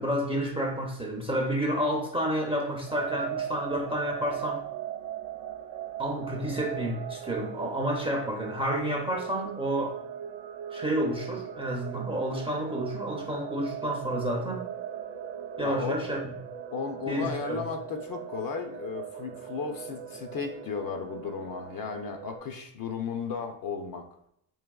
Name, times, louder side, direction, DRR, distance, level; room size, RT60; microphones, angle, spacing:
voice 1, 0.0-4.6 6.0-10.0 10.7-14.7 15.6-16.2 17.1-17.6, equal, 10° right, -1 dB, 0.5 m, -30 dB
sound 1, 2.9-22.4, right 9 dB, 70° right, 0.5 m, -39 dB
voice 2, 15.6-16.0 16.7-24.1, left 5 dB, 45° left, 5 dB, 0.6 m, -34 dB
4.7 x 2.9 x 2.3 m, 0.75 s
cardioid pair, 115°, 47 cm